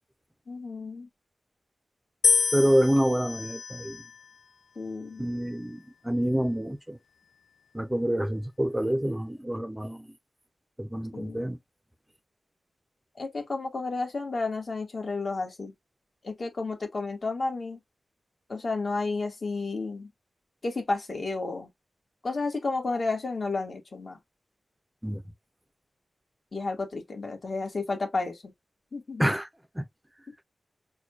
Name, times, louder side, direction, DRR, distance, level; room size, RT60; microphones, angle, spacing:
voice 1, 0.5-1.1 4.7-5.2 11.1-11.4 13.1-15.7 16.2-17.8 18.5-20.1 20.6-21.7 22.2-24.2 26.5-28.5 28.9-29.3, left 3 dB, 40° left, 1.5 m, -32 dB
sound 1, 2.2-4.4 5.2-5.8, left 6 dB, 90° left, 0.3 m, -28 dB
voice 2, 2.5-4.0 5.2-7.0 7.7-10.1 10.8-11.6 25.0-25.2 29.2-29.5 29.8-29.9, equal, 10° right, 0.6 m, -27 dB
6.3 x 2.3 x 2.9 m
wide cardioid pair, 160°, 0 cm